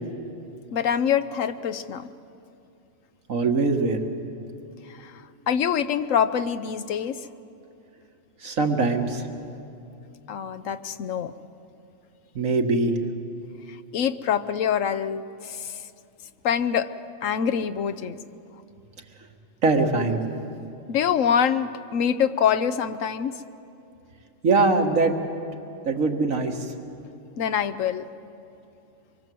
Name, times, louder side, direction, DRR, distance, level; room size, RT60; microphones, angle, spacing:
voice 1, 0.7-2.1 4.9-7.2 10.3-11.3 13.7-15.8 16.4-16.9 17.2-18.2 20.9-23.3 27.4-28.1, left 8 dB, 80° left, 12 dB, 1.2 m, -25 dB
voice 2, 3.3-4.0 8.4-9.2 12.4-12.9 19.6-20.2 24.4-25.1 25.9-26.6, right 3 dB, 85° right, 3 dB, 2.0 m, -22 dB
25.5 x 23.0 x 7.7 m, 2.7 s
omnidirectional pair, 1.3 m